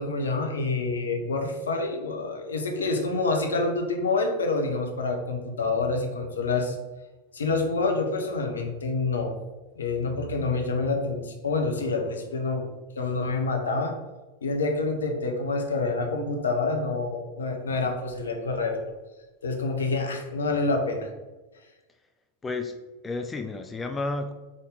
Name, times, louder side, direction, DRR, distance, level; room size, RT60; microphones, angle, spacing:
voice 1, 0.0-6.8 7.3-9.3 9.8-12.7 13.0-13.9 14.4-18.9 19.4-21.1, left 3 dB, 70° left, 3 dB, 0.7 m, -27 dB
voice 2, 22.4-22.8 23.0-24.3, left 3 dB, 15° left, 6 dB, 0.3 m, -31 dB
3.7 x 3.7 x 3.7 m, 1.2 s
figure-of-eight pair, 90°, 0 cm